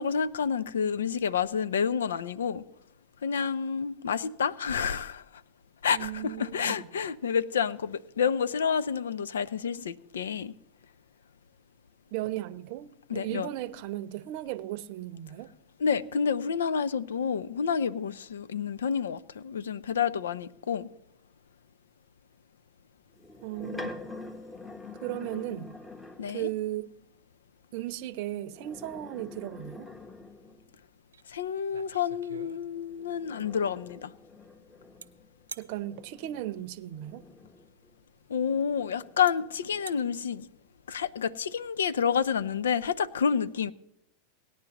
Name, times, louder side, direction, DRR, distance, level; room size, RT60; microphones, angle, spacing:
voice 1, 0.0-2.6 3.2-5.2 5.8-10.5 13.1-13.5 15.8-20.9 26.2-26.5 31.3-34.1 38.3-40.5 40.9-43.7, left 7 dB, 80° left, 0.5 m, -29 dB
voice 2, 5.9-6.8 12.1-15.5 23.4-24.1 25.0-25.7 26.3-26.9 27.7-29.9 35.6-37.2, right 14 dB, 55° right, 0.7 m, -36 dB
sound 1, 23.2-26.5 28.4-30.8 32.7-37.9 38.5-40.2, left 3 dB, 10° left, 1.0 m, -46 dB
sound 2, 31.1-31.2 31.6-33.0 35.0-35.1 35.5-35.7 37.6-37.7 38.6-38.7 39.3-39.4 39.7-40.0, right 6 dB, 90° right, 0.7 m, -45 dB
18.5 x 10.0 x 3.0 m
hypercardioid pair, 95°, 0 cm